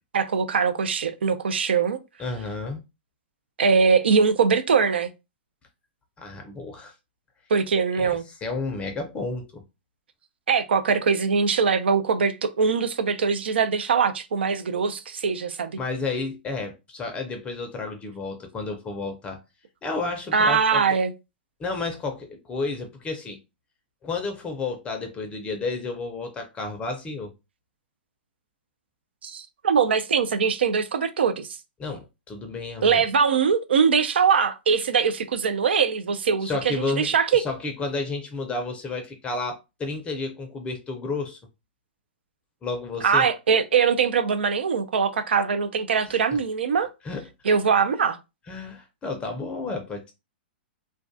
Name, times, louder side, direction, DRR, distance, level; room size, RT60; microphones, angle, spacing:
voice 1, 0.1-2.0 3.6-5.1 7.5-8.2 10.5-15.8 20.3-21.1 29.2-31.5 32.8-37.4 43.0-46.9 47.4-48.2, right 6 dB, 80° right, 0.4 m, -22 dB
voice 2, 2.2-2.8 6.2-6.9 8.0-9.6 15.8-19.4 19.8-20.8 21.6-23.4 24.0-27.3 31.8-33.0 36.4-41.4 42.6-43.3 46.1-46.2 47.0-47.2 48.5-50.1, left 3 dB, 20° left, 0.5 m, -31 dB
2.2 x 2.2 x 2.6 m
hypercardioid pair, 120°, 6 cm